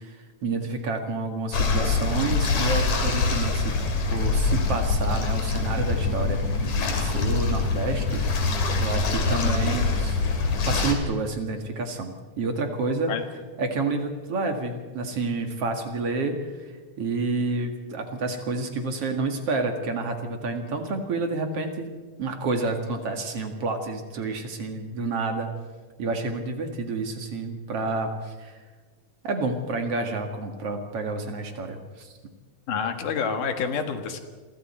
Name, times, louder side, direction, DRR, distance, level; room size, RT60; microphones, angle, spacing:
voice 1, 0.0-3.8 4.1-8.2 8.8-10.2 10.6-13.1 13.6-16.5 17.0-21.9 22.2-25.5 26.0-28.6 29.2-32.1, right 3 dB, 50° right, 4 dB, 2.7 m, -29 dB
sound 1, 1.5-10.9, left 4 dB, 65° left, 3.9 m, -24 dB
voice 2, 32.7-34.2, left 6 dB, 90° left, 6 dB, 3.3 m, -28 dB
28.0 x 24.0 x 4.4 m, 1.4 s
omnidirectional pair, 3.6 m